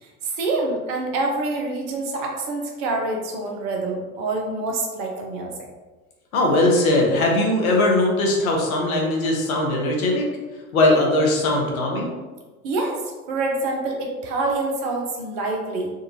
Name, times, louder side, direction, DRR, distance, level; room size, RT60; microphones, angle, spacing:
voice 1, 0.0-5.7 12.6-15.9, right 2 dB, 45° right, 1 dB, 0.9 m, -26 dB
voice 2, 6.3-10.2 10.7-12.1, left 2 dB, 70° left, -1 dB, 1.0 m, -20 dB
3.8 x 2.6 x 2.8 m, 1.3 s
figure-of-eight pair, 80°, 44 cm